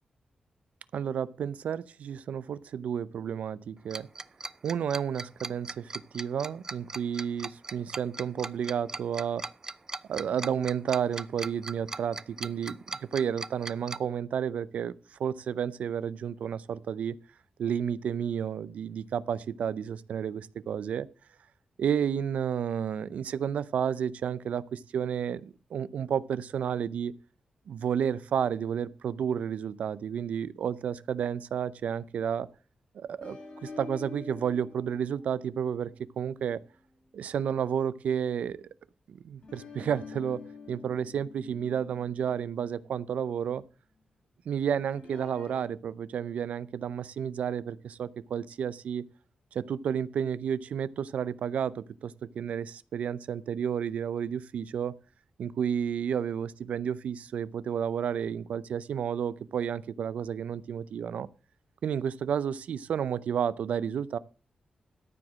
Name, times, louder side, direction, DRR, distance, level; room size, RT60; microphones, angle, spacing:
voice 1, 0.9-4.1 4.6-9.4 10.1-14.9 15.2-17.2 17.6-21.1 21.8-27.1 27.7-32.5 32.9-33.4 33.6-36.6 37.1-38.7 39.1-43.6 44.5-49.0 49.5-55.0 55.4-61.3 61.8-64.2, right 8 dB, 85° right, 0.5 m, -31 dB
Tick-tock, 3.9-14.0, right 3 dB, 25° right, 0.4 m, -38 dB
sound 1, 33.2-37.8 39.4-43.6 44.9-45.6, left 4 dB, 50° left, 3.6 m, -48 dB
13.0 x 5.0 x 7.4 m
wide cardioid pair, 125°, 2 cm